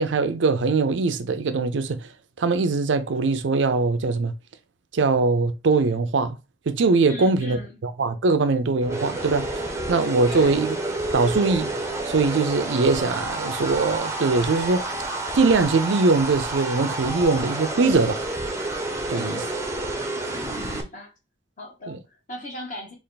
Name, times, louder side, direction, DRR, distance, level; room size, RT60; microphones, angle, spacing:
voice 1, 0.0-2.1 2.4-4.3 4.9-6.4 6.7-7.6 7.8-9.5 9.9-10.8 11.1-11.7 12.1-14.8 15.3-18.2 19.1-19.4 21.9-22.0, right 3 dB, 75° right, 0.5 m, -21 dB
voice 2, 7.1-7.8 10.2-10.6 19.1-19.7 20.5-21.1 21.6-22.9, left 1 dB, 40° left, 1.4 m, -38 dB
sound 1, 8.8-20.8, right 2 dB, 15° right, 0.6 m, -29 dB
3.3 x 2.5 x 4.0 m
head